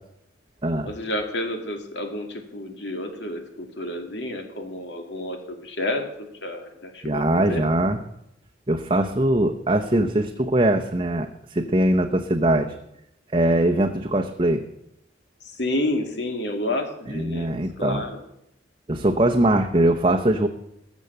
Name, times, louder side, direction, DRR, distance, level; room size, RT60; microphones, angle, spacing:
voice 1, 0.8-7.2 7.5-7.6 15.4-18.2, left 1 dB, 70° left, 4 dB, 2.4 m, -30 dB
voice 2, 7.0-8.0 8.7-12.7 13.3-14.6 17.1-18.0 18.9-20.5, right 1 dB, 30° right, 2 dB, 0.9 m, -21 dB
21.0 x 7.3 x 6.8 m, 0.80 s
head